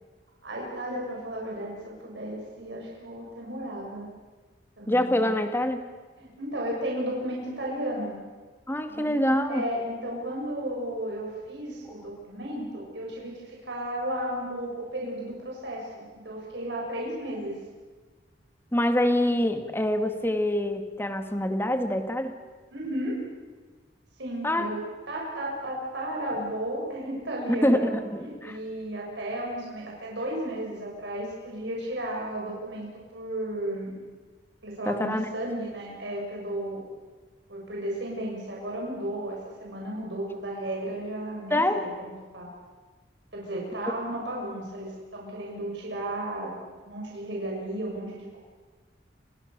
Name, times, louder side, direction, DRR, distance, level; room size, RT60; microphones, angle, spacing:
voice 1, 0.4-4.1 4.8-5.2 6.2-8.2 8.9-9.1 9.5-17.5 22.7-23.2 24.2-24.8 25.1-28.0 28.2-34.0 34.6-36.8 37.5-42.5 43.3-46.5 46.8-48.4, right 1 dB, 75° right, -3 dB, 7.1 m, -34 dB
voice 2, 4.9-5.8 8.7-9.6 18.7-22.3 24.4-24.7 27.5-28.6 34.9-35.3 41.5-41.8, left 1 dB, 15° left, 7 dB, 2.2 m, -25 dB
30.0 x 26.0 x 6.9 m, 1.4 s
head